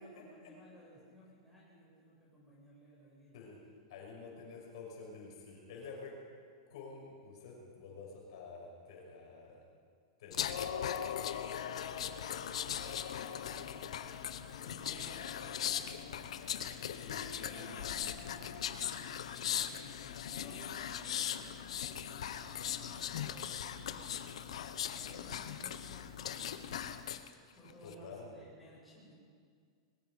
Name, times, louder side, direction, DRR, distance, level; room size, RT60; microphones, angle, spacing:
voice 1, 0.0-3.4 11.9-16.9 17.3-29.1, equal, ahead, -8 dB, 7.7 m, -58 dB
voice 2, 3.9-6.2 6.7-9.6 10.2-11.1 14.4-15.2 16.6-17.3 17.6-17.8 27.8-28.3, left 4 dB, 60° left, -2 dB, 6.3 m, -50 dB
sound 1, 10.3-27.3 27.7-27.9, left 9 dB, 85° left, 1.3 m, -39 dB
21.5 x 21.5 x 5.5 m, 2.1 s
supercardioid pair, 165°, 3 cm